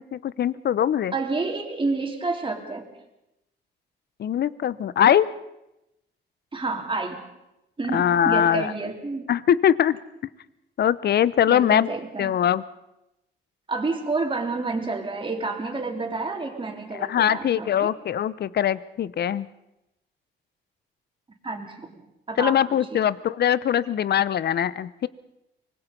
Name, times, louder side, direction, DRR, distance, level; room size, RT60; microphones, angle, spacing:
voice 1, 0.1-1.1 4.2-5.3 7.9-8.7 9.3-10.0 10.8-11.9 12.2-12.6 16.9-19.5 22.4-25.1, left 9 dB, 55° left, 18 dB, 0.8 m, -22 dB
voice 2, 1.1-2.9 6.5-7.2 7.8-9.3 11.5-12.4 13.7-17.9 21.4-21.9 22.3-22.6 22.9-23.0, right 3 dB, 25° right, 2 dB, 3.7 m, -29 dB
24.5 x 20.0 x 5.4 m, 0.91 s
cardioid pair, 90°, 20 cm